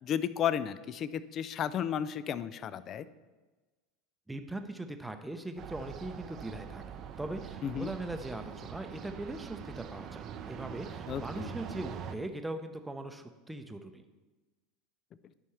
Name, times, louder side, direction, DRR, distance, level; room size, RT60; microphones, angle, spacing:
voice 1, 0.0-3.1 7.6-7.9 11.1-11.5, left 9 dB, 40° left, 15 dB, 0.4 m, -33 dB
voice 2, 4.3-6.8 7.2-14.0, right 2 dB, 5° right, 7 dB, 0.7 m, -40 dB
sound 1, 5.6-12.2, right 8 dB, 40° right, 0.6 m, -43 dB
11.5 x 5.5 x 3.2 m, 1.2 s
figure-of-eight pair, 80°, 0 cm